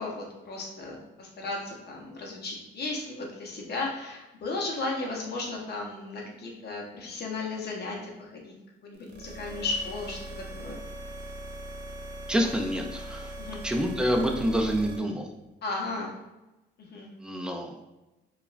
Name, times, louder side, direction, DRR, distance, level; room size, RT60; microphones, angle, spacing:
voice 1, 0.0-8.5 8.8-10.8 13.4-13.6 15.6-16.1 16.8-17.1, left 3 dB, 55° left, -1 dB, 0.7 m, -35 dB
sound 1, 9.0-15.0, right 2 dB, 65° right, 0.6 m, -40 dB
voice 2, 12.3-13.4 13.6-15.3 17.2-17.8, equal, 5° right, 3 dB, 0.4 m, -27 dB
2.4 x 2.2 x 3.0 m, 1.0 s
cardioid pair, 90°, 20 cm